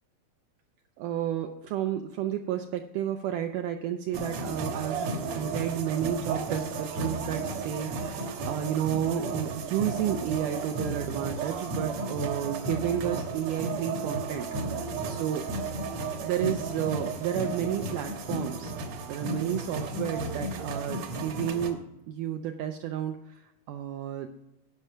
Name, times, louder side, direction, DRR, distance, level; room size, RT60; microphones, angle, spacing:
voice 1, 1.0-15.5 16.2-18.7 19.1-24.3, right 10 dB, 85° right, 6 dB, 1.9 m, -32 dB
sound 1, 4.1-21.7, right 3 dB, 65° right, 1.8 m, -33 dB
11.0 x 5.6 x 6.2 m, 0.92 s
omnidirectional pair, 4.4 m